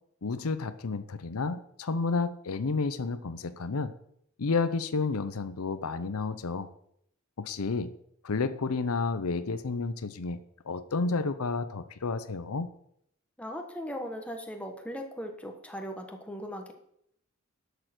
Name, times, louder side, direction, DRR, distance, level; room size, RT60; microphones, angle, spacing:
voice 1, 0.2-3.9 4.4-6.7 7.4-7.9 8.2-10.4 10.7-12.7, left 4 dB, 85° left, 12 dB, 0.7 m, -31 dB
voice 2, 13.4-16.7, equal, 5° left, 3 dB, 1.3 m, -38 dB
11.5 x 6.7 x 6.1 m, 0.72 s
head